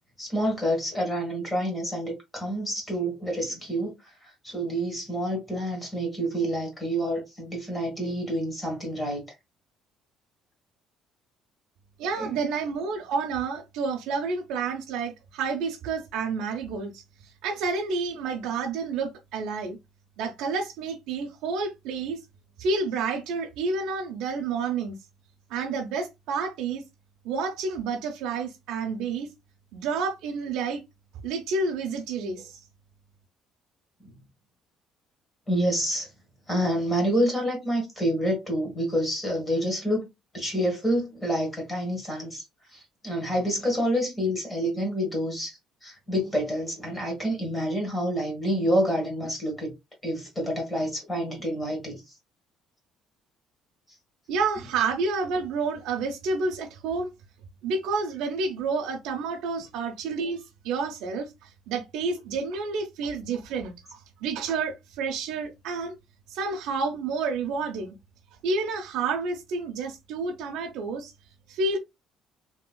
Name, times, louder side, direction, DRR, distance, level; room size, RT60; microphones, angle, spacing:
voice 1, 0.2-4.0 4.2-9.2 12.2-12.4 34.0-34.1 35.5-36.1 36.5-40.1 40.3-42.4 42.7-49.7 50.0-52.1, equal, 15° left, 1.5 m, -28 dB
voice 2, 12.0-17.0 17.4-19.8 20.2-22.2 22.6-24.9 25.5-26.8 27.2-29.3 29.7-30.8 31.2-32.6 54.3-57.1 57.6-65.9 66.3-67.9 68.4-71.1 71.5-71.8, right 4 dB, 85° right, 0.6 m, -29 dB
3.1 x 2.9 x 2.2 m
cardioid pair, 170°, 0 cm